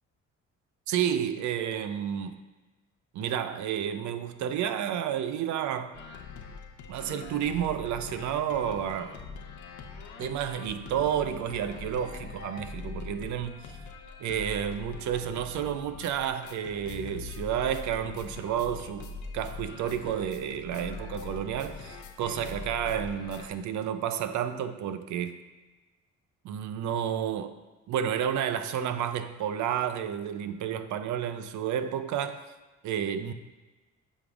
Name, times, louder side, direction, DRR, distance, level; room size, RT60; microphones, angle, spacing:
voice 1, 0.9-2.4 3.1-6.0 6.9-9.2 10.2-13.7 14.2-19.1 19.3-25.4 26.4-27.6 27.9-32.4 32.8-33.3, right 9 dB, 75° right, 0.5 m, -31 dB
sound 1, 5.9-23.5, left 4 dB, 75° left, 0.7 m, -42 dB
8.1 x 5.3 x 2.4 m
cardioid pair, 90°, 30 cm